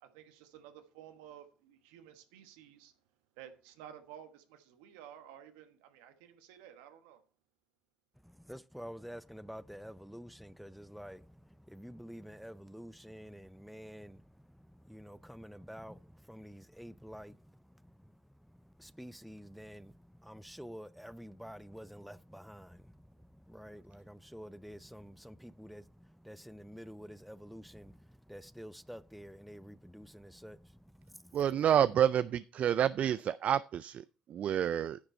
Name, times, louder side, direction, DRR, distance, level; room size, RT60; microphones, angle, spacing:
voice 1, 0.0-2.9 3.3-7.2, right 10 dB, 80° right, 1.2 m, -53 dB
voice 2, 8.2-31.4, equal, ahead, 0.6 m, -49 dB
voice 3, 31.3-35.0, right 10 dB, 55° right, 0.3 m, -29 dB
9.8 x 6.7 x 4.3 m
hypercardioid pair, 55°, 3 cm